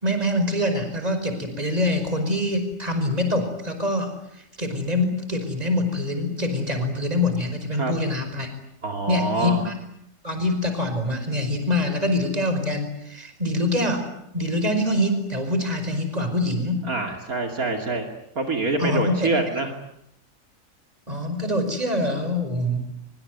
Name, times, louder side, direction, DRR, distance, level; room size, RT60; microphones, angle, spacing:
voice 1, 0.0-4.1 4.6-8.5 9.1-9.7 10.2-14.1 14.3-16.9 18.8-19.3 21.1-22.9, left 1 dB, 25° right, 7 dB, 5.3 m, -24 dB
voice 2, 8.8-9.6 16.9-18.1 18.4-19.7, right 3 dB, 60° right, 4 dB, 3.1 m, -25 dB
25.0 x 24.0 x 9.5 m, 0.78 s
omnidirectional pair, 1.7 m